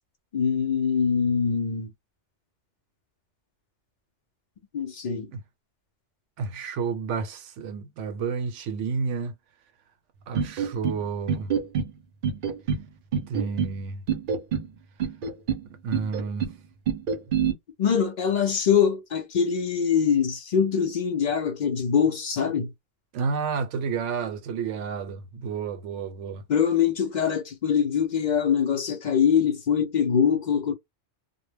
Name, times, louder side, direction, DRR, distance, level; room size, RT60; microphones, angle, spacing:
voice 1, 0.3-1.9 4.7-5.3 17.8-22.7 26.5-30.7, left 7 dB, 60° left, 0.5 m, -23 dB
voice 2, 6.4-9.3 10.3-11.5 13.3-14.0 15.8-16.5 17.3-17.4 23.1-26.4, right 5 dB, 85° right, 0.9 m, -30 dB
sound 1, 10.3-11.0 11.3-11.9 12.2-12.8 13.1-13.7 14.1-14.7 15.0-15.6 15.9-16.5 16.9-17.5, right 7 dB, 55° right, 0.6 m, -26 dB
2.1 x 2.0 x 3.2 m
omnidirectional pair, 1.2 m